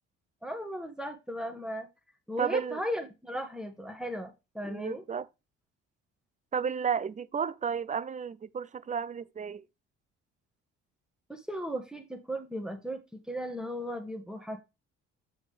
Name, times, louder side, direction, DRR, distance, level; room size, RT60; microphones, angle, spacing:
voice 1, 0.4-1.9 2.3-5.0 11.3-14.6, equal, ahead, 1.7 m, -36 dB
voice 2, 2.4-2.8 4.6-5.3 6.5-9.6, right 6 dB, 25° right, 0.5 m, -32 dB
6.6 x 6.2 x 3.4 m
hypercardioid pair, 60°, 32 cm